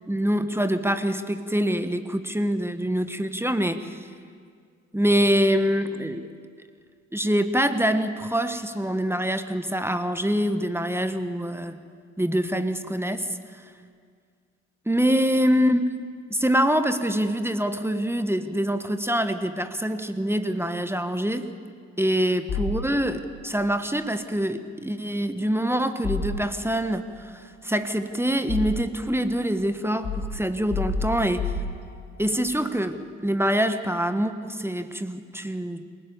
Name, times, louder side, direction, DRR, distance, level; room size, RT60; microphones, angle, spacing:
voice 1, 0.1-4.0 4.9-6.3 7.1-11.8 12.2-13.6 14.9-15.9 16.3-21.5 22.0-31.5 32.2-35.8, equal, 5° right, 9 dB, 1.4 m, -25 dB
sound 1, 22.5-23.4 26.0-26.9 27.8-29.1 30.0-32.3, left 3 dB, 55° left, 4.6 m, -31 dB
22.5 x 19.5 x 7.1 m, 2.1 s
hypercardioid pair, 45°, 36 cm